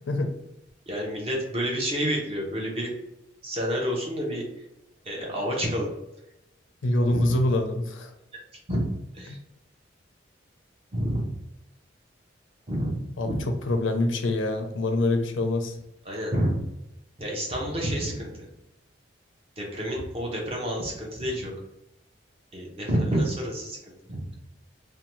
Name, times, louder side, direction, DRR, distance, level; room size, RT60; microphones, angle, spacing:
voice 1, 0.9-2.9 3.4-4.4 5.0-5.9 7.1-7.2 8.7-8.8 9.1-9.4 10.9-11.2 12.7-13.0 13.3-13.4 16.1-16.6 17.2-18.3 19.6-21.5 22.5-23.8 24.1-24.2, equal, 30° right, -1 dB, 0.7 m, -28 dB
voice 2, 6.8-8.1 9.3-9.4 13.2-13.3 13.7-15.8, left 2 dB, 90° left, 5 dB, 0.5 m, -25 dB
2.7 x 2.2 x 3.0 m, 0.88 s
head